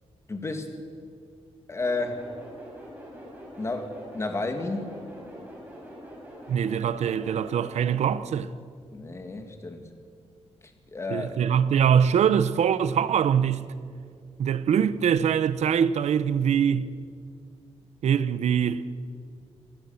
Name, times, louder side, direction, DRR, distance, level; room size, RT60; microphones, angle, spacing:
voice 1, 0.3-0.7 1.7-2.2 3.6-5.0 8.9-9.9 10.9-11.4, left 3 dB, 25° left, 2.2 m, -31 dB
sound 1, 1.8-8.1, equal, 15° right, 6.0 m, -44 dB
voice 2, 6.5-8.5 11.1-13.6 14.4-16.9 18.0-18.9, right 8 dB, 80° right, 0.8 m, -23 dB
25.5 x 18.5 x 7.1 m
wide cardioid pair, 165°, 11 cm